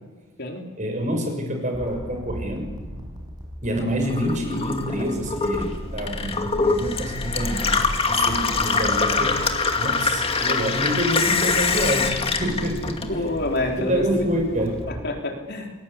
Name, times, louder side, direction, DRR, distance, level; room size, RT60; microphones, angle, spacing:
voice 1, 0.8-2.7 3.6-5.7 5.9-7.6 8.1-9.4 9.7-12.1 12.4-13.0 13.8-14.8, equal, 35° right, 3 dB, 6.7 m, -26 dB
sound 1, 1.7-15.0, equal, 20° right, 6.0 m, -36 dB
Gurgling / Water tap faucet / Sink (filling or washing), 4.0-13.6 13.9-14.7, left 4 dB, 25° left, 2.3 m, -24 dB
voice 2, 13.1-14.2 14.9-15.7, left 2 dB, 50° left, 2 dB, 4.0 m, -27 dB
29.0 x 21.5 x 8.5 m, 1.3 s
head